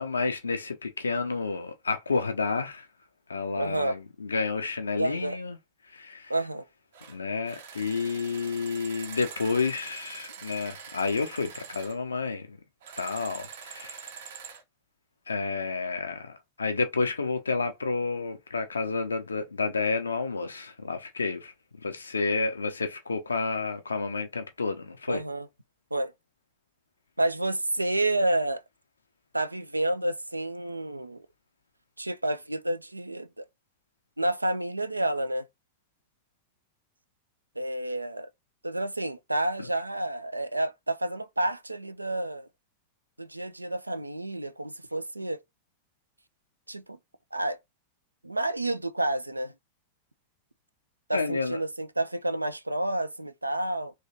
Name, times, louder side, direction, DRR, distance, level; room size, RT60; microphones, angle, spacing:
voice 1, 0.0-2.9 3.3-5.6 5.9-6.3 7.1-12.6 13.0-14.0 15.3-21.5 21.8-25.2 51.1-51.6, left 4 dB, 75° left, 0.6 m, -30 dB
voice 2, 3.6-4.0 5.0-5.4 6.3-6.7 25.1-25.5 25.9-26.1 27.2-28.6 29.3-31.2 32.0-33.4 34.2-35.5 37.6-38.3 38.6-42.5 43.2-45.4 46.7-47.0 47.3-47.6 48.2-49.5 51.1-53.9, right 1 dB, 85° right, 0.4 m, -29 dB
sound 1, 6.9-7.2 7.4-12.0 12.8-14.6, right 6 dB, 60° right, 0.8 m, -44 dB
3.2 x 3.1 x 2.8 m
figure-of-eight pair, 90°, 0 cm